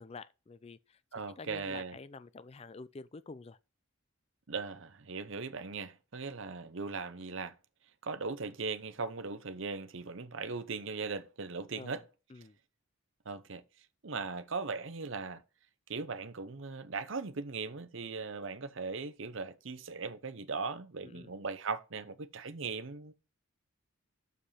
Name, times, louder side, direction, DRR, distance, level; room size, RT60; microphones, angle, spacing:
voice 1, 0.0-1.0 1.4-3.6 11.8-12.0 12.3-12.6 21.0-21.3, left 3 dB, 30° left, 0.4 m, -48 dB
voice 2, 1.1-2.0 4.5-7.6 8.0-12.0 13.3-13.6 14.0-15.4 15.9-23.1, right 4 dB, 60° right, 0.8 m, -39 dB
6.7 x 5.2 x 5.5 m
head